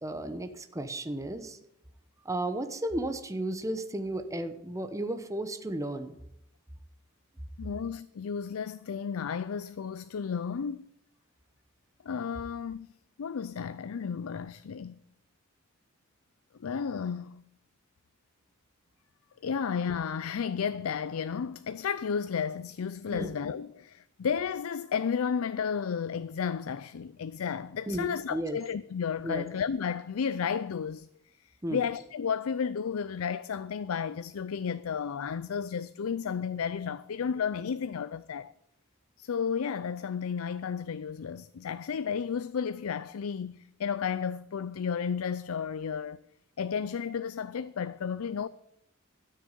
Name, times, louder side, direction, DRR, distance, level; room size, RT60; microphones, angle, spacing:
voice 1, 0.0-1.6 2.2-6.2 23.1-23.3 27.9-28.6 29.2-29.5 31.6-31.9, right 1 dB, 15° right, 0.9 m, -34 dB
voice 2, 7.6-10.8 12.0-12.9 13.2-15.0 16.6-17.4 19.4-31.1 31.7-38.5 39.2-46.2 46.6-48.5, left 6 dB, 85° left, 0.4 m, -32 dB
13.0 x 6.5 x 9.1 m
head